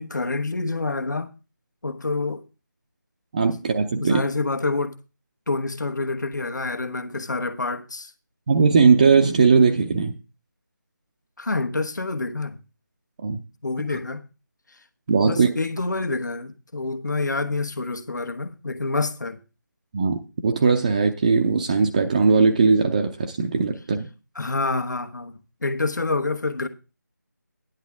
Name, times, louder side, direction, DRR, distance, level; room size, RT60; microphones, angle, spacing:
voice 1, 0.0-1.3 1.8-2.4 4.0-4.9 5.5-8.1 11.4-12.6 13.6-14.2 15.2-19.4 24.3-26.7, left 3 dB, 65° left, 1.5 m, -27 dB
voice 2, 3.3-4.2 8.5-10.1 13.2-13.4 15.1-15.5 19.9-24.1, right 5 dB, 25° right, 0.7 m, -19 dB
12.5 x 10.5 x 3.5 m
figure-of-eight pair, 165°, 11 cm